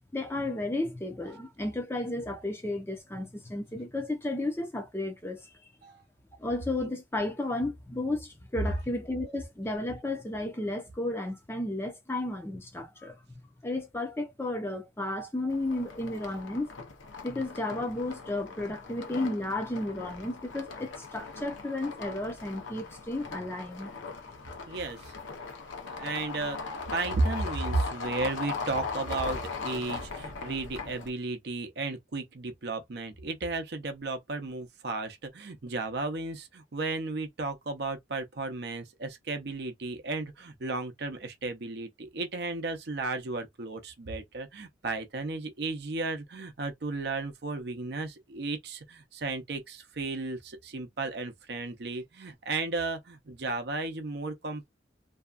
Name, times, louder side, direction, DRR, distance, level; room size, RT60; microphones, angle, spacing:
voice 1, 0.1-5.5 6.4-13.2 13.6-16.7 17.2-23.9, left 2 dB, 15° left, 0.5 m, -33 dB
sound 1, 15.5-31.1, left 4 dB, 90° left, 0.7 m, -39 dB
voice 2, 24.7-25.1 25.9-26.6 26.9-54.7, right 3 dB, 60° right, 0.6 m, -34 dB
2.7 x 2.2 x 2.4 m
head